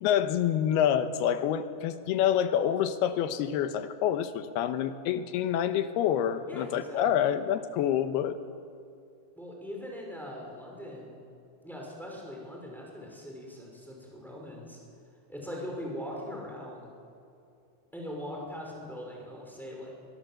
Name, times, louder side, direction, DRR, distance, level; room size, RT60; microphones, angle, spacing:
voice 1, 0.0-8.4, left 10 dB, 90° left, 10 dB, 3.1 m, -27 dB
voice 2, 6.5-7.4 9.4-11.2 11.6-14.8 15.3-16.9 17.9-19.9, equal, ahead, -2 dB, 5.5 m, -41 dB
23.0 x 22.0 x 7.8 m, 2.6 s
omnidirectional pair, 4.4 m